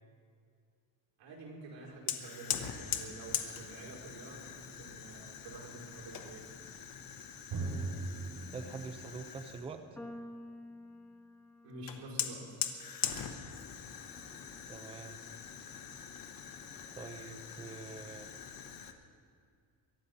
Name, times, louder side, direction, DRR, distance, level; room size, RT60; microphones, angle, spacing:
voice 1, 1.2-6.4 11.6-12.6, right 2 dB, 90° right, -4 dB, 5.0 m, -48 dB
Fire, 2.1-9.7 11.9-18.9, left 8 dB, 50° left, 1.1 m, -42 dB
Drum, 7.5-11.0, right 3 dB, 65° right, 2.5 m, -41 dB
voice 2, 8.5-9.8 14.7-15.2 17.0-18.3, right 4 dB, 15° right, 7 dB, 0.5 m, -45 dB
sound 1, 10.0-16.3, left 1 dB, 5° left, 1.0 m, -53 dB
23.0 x 9.9 x 5.4 m, 2.3 s
cardioid pair, 175°, 44 cm